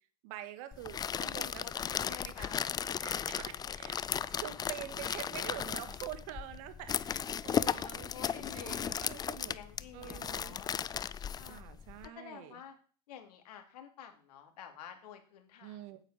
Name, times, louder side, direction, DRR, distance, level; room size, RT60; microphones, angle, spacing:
voice 1, 0.2-1.7 2.1-2.6 3.0-4.0 4.4-9.6 9.9-10.6 11.4-12.6 15.6-16.0, right 13 dB, 60° right, 10 dB, 1.9 m, -46 dB
sound 1, 0.7-12.1, left 8 dB, 20° left, 0.5 m, -36 dB
voice 2, 1.2-2.8 8.1-10.7 11.4-11.6 12.0-12.8 13.1-16.0, left 9 dB, 70° left, 5 dB, 3.1 m, -50 dB
9.2 x 8.9 x 7.5 m, 0.43 s
hypercardioid pair, 110°, 21 cm